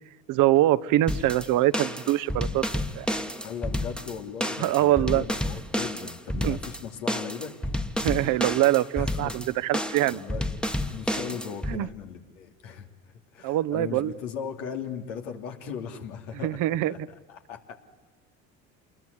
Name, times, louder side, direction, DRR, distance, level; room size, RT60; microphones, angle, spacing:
voice 1, 0.3-2.6 2.9-3.1 4.6-5.2 6.4-6.6 8.0-10.2 11.7-11.9 13.4-14.1 16.4-17.1, right 15 dB, 60° right, 13 dB, 1.0 m, -24 dB
sound 1, 1.1-11.8, left 1 dB, ahead, 1.5 m, -31 dB
voice 2, 3.4-7.5 8.9-9.4 10.1-10.5 10.9-12.9 13.3-17.0 17.3-17.7, left 7 dB, 80° left, 4 dB, 3.0 m, -38 dB
27.5 x 21.5 x 9.8 m, 1.1 s
hypercardioid pair, 70°, 36 cm